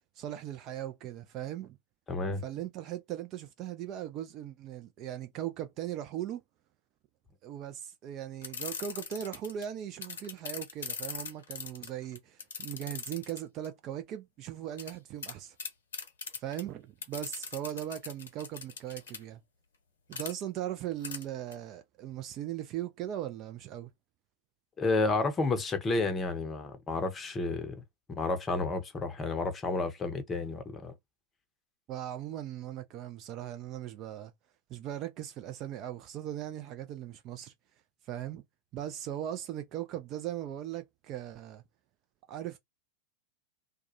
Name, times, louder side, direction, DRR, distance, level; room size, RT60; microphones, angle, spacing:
voice 1, 0.2-1.8 2.4-6.4 7.4-15.6 16.4-19.4 20.1-23.9 31.9-34.3 34.7-37.5 38.1-38.4 38.7-41.6 42.3-42.6, right 11 dB, 35° right, 0.4 m, -39 dB
voice 2, 2.1-2.4 24.8-27.8 28.1-30.9, left 3 dB, 20° left, 0.7 m, -31 dB
sound 1, 8.4-9.6 10.0-13.7 14.8-14.9 15.2-15.3 15.6-16.6 17.0-19.2 20.1-20.3 21.0-21.2 21.5-21.6, left 5 dB, 65° left, 0.7 m, -40 dB
2.2 x 2.2 x 2.8 m
figure-of-eight pair, 90°, 0 cm